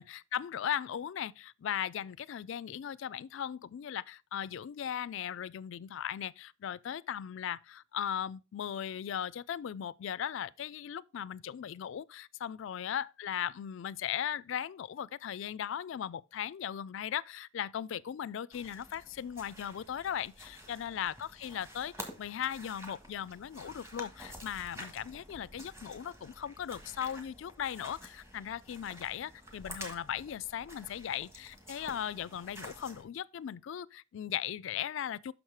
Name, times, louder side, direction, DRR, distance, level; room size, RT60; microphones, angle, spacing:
voice 1, 0.0-35.3, left 9 dB, 60° left, 0.3 m, -38 dB
sound 1, 18.5-33.0, equal, 10° right, 1.4 m, -50 dB
6.4 x 6.1 x 4.6 m
head